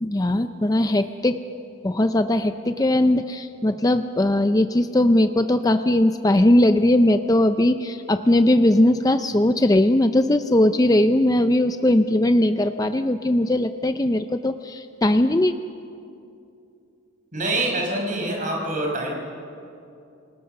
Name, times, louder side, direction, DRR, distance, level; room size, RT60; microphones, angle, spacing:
voice 1, 0.0-1.4 1.8-15.5, left 1 dB, 15° left, 9 dB, 0.5 m, -19 dB
voice 2, 17.3-19.1, right 2 dB, 40° right, 0 dB, 5.5 m, -25 dB
29.0 x 19.0 x 6.7 m, 2.5 s
head